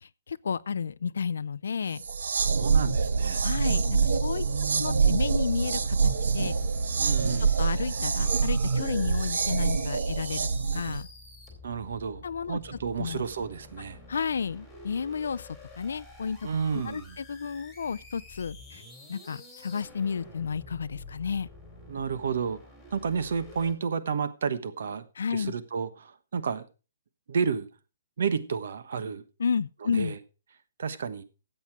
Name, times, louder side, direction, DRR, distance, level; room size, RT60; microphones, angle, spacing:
voice 1, 0.0-2.0 3.4-6.5 7.6-11.1 12.2-12.6 13.0-13.2 14.1-16.4 16.7-18.8 19.1-21.5 25.2-25.6 29.4-30.1, left 6 dB, 90° left, 0.5 m, -32 dB
sound 1, 2.0-11.0, right 5 dB, 85° right, 1.2 m, -26 dB
voice 2, 2.3-3.5 4.3-5.2 7.0-7.5 11.6-14.0 16.4-17.2 21.9-22.6 22.9-25.0 25.3-26.7 27.3-27.7 28.2-29.2 29.8-30.2 30.8-31.2, right 6 dB, 55° right, 1.2 m, -31 dB
sound 2, 4.4-23.7, left 2 dB, ahead, 2.4 m, -49 dB
13.5 x 8.0 x 4.8 m
hypercardioid pair, 180°, 0 cm